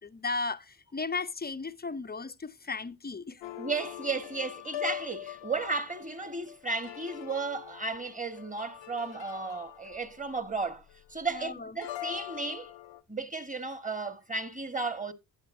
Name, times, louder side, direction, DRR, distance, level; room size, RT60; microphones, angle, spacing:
voice 1, 0.0-3.4 11.3-11.7, left 4 dB, 20° left, 0.6 m, -35 dB
sound 1, 3.4-11.2 11.8-13.0, left 13 dB, 75° left, 0.9 m, -42 dB
voice 2, 3.6-10.8 11.1-12.7 13.1-15.1, right 3 dB, 15° right, 1.6 m, -34 dB
11.5 x 8.6 x 2.7 m
supercardioid pair, 40°, 45 cm